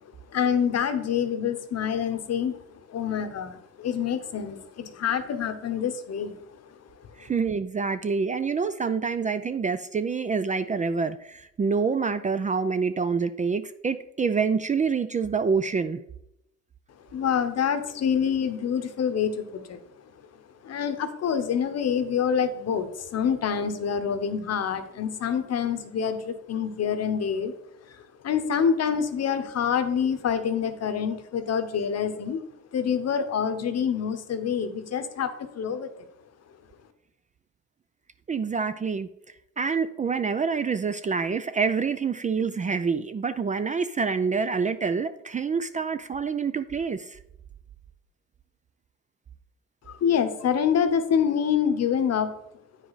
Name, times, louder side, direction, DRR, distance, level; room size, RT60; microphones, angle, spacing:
voice 1, 0.3-2.6 2.9-6.9 7.2-7.3 17.1-20.1 20.6-27.5 27.9-32.4 32.7-35.9 49.9-52.3, left 7 dB, 55° left, 10 dB, 0.9 m, -26 dB
voice 2, 7.2-16.0 38.3-39.1 39.6-47.2, right 5 dB, 25° right, 12 dB, 0.3 m, -27 dB
8.9 x 4.9 x 4.0 m, 0.81 s
cardioid pair, 90°, 30 cm